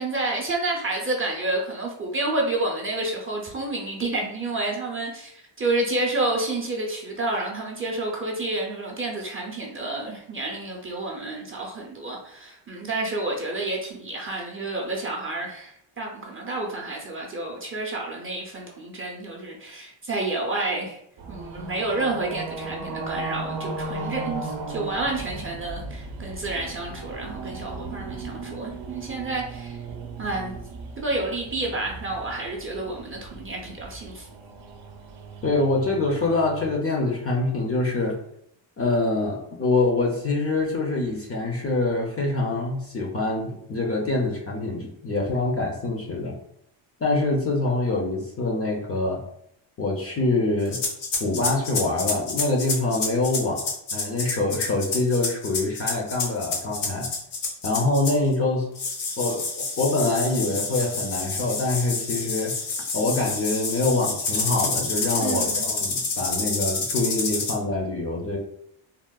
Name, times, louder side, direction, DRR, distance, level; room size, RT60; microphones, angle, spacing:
voice 1, 0.0-21.0 21.3-29.8 30.2-30.7 31.0-34.3 65.2-65.7, right 2 dB, 30° right, -2 dB, 0.4 m, -29 dB
sound 1, 21.2-36.8, right 3 dB, 80° right, 0.6 m, -36 dB
voice 2, 35.4-38.2 38.8-46.4 47.0-49.2 49.8-50.8 51.2-57.1 57.6-58.7 59.2-62.5 62.9-68.4, left 2 dB, 30° left, 0 dB, 0.4 m, -25 dB
sound 2, 50.7-58.3 58.7-67.5, left 3 dB, 85° left, 0.8 m, -28 dB
3.5 x 2.1 x 2.2 m, 0.72 s
wide cardioid pair, 125°, 47 cm